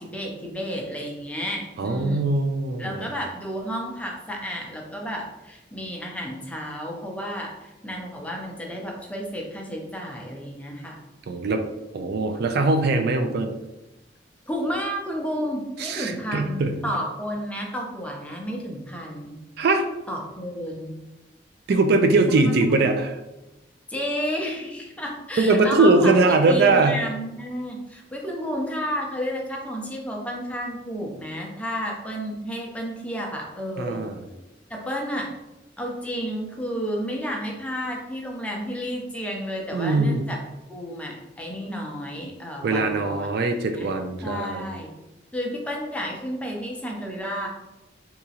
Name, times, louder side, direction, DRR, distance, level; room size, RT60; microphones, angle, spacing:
voice 1, 0.0-2.3 2.8-11.0 14.5-19.4 20.1-20.9 23.9-34.0 34.7-35.3 35.8-40.4 40.7-43.3 43.7-43.9 44.2-44.9 45.3-47.5, equal, 5° left, 0 dB, 0.5 m, -31 dB
voice 2, 1.8-3.1 11.3-11.6 11.9-13.5 15.8-16.8 19.6-19.9 21.7-23.2 25.4-27.0 33.8-34.2 39.7-40.2 42.6-44.6, right 3 dB, 60° right, 6 dB, 0.3 m, -21 dB
3.5 x 2.9 x 2.8 m, 0.99 s
head